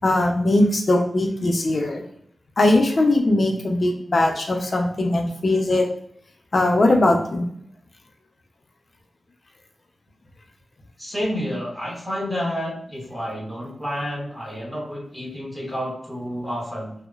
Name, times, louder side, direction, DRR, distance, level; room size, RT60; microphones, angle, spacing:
voice 1, 0.0-2.0 2.6-5.9 6.5-7.5, left 2 dB, 45° left, 2 dB, 0.5 m, -20 dB
voice 2, 11.0-16.9, equal, 5° right, -4 dB, 1.0 m, -30 dB
2.8 x 2.0 x 2.2 m, 0.68 s
wide cardioid pair, 105°, 0 cm